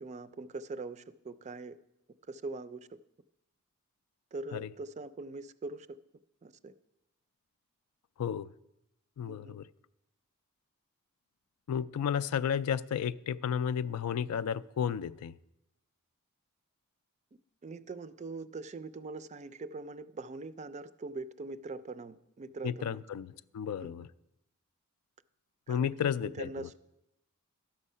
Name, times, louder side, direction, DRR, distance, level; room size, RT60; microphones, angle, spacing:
voice 1, 0.0-1.8 2.3-3.0 4.3-6.0 6.4-6.7 9.3-9.6 17.6-23.0 23.8-23.9 25.7-26.0 26.2-26.8, right 3 dB, 30° right, 14 dB, 0.4 m, -42 dB
voice 2, 9.2-9.7 11.7-15.3 22.6-24.1 25.7-26.7, left 8 dB, 80° left, 16 dB, 0.3 m, -33 dB
11.5 x 7.2 x 5.5 m, 0.88 s
head